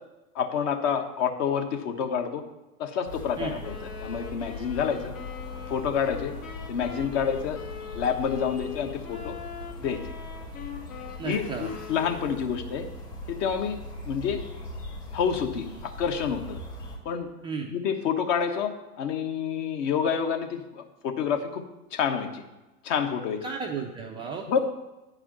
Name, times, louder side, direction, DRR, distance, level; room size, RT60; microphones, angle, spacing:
voice 1, 0.3-2.4 2.8-5.1 5.7-6.3 6.7-7.6 7.9-9.3 9.8-10.0 11.2-12.8 13.3-13.8 14.0-14.4 15.1-16.6 17.0-17.3 17.7-21.6 21.9-22.4 22.8-23.4 24.5-24.6, left 7 dB, 50° left, 5 dB, 1.3 m, -28 dB
sound 1, 3.0-17.0, left 2 dB, 85° left, 3.3 m, -40 dB
Wind instrument woodwind instrument, 3.6-12.7, left 7 dB, 70° left, 1.9 m, -41 dB
voice 2, 11.2-11.7 17.4-17.7 23.4-24.6, right 5 dB, 10° right, 0 dB, 0.4 m, -34 dB
9.1 x 4.8 x 7.4 m, 1.0 s
hypercardioid pair, 105°, 45 cm